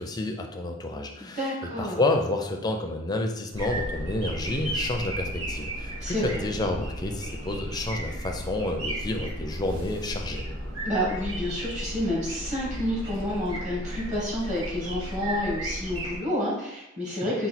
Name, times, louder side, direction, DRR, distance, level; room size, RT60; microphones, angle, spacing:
voice 1, 0.0-1.4 1.8-10.5, left 2 dB, 20° left, 3 dB, 0.4 m, -29 dB
voice 2, 1.2-2.0 6.0-6.4 10.8-17.5, left 1 dB, 35° right, -5 dB, 1.4 m, -29 dB
sound 1, 3.5-16.2, right 1 dB, 90° right, 1.3 m, -34 dB
4.2 x 2.3 x 4.1 m, 0.89 s
head